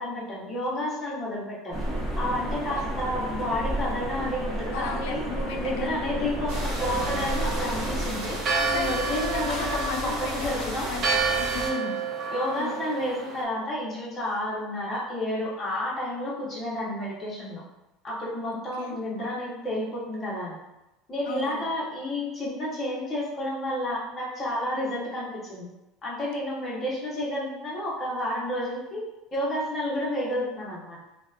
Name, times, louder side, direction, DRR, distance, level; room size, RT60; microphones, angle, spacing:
voice 1, 0.0-1.8 2.2-5.2 5.6-8.4 8.7-10.9 11.5-12.0 12.3-17.6 18.0-20.6 21.1-25.7 26.0-29.0 29.3-31.0, left 1 dB, 20° left, -6 dB, 0.7 m, -31 dB
sound 1, 1.7-8.1, right 1 dB, 15° right, 1.1 m, -32 dB
voice 2, 4.7-6.4 8.6-10.6 10.9-11.6 12.6-12.8 18.8-19.0 21.3-21.7, left 5 dB, 75° left, 5 dB, 0.3 m, -35 dB
sound 2, 6.5-11.7, right 1 dB, 60° right, 0.8 m, -34 dB
Church bell, 6.8-13.4, right 4 dB, 35° right, 0.4 m, -30 dB
2.7 x 2.0 x 2.3 m, 0.97 s
cardioid pair, 165°, 0 cm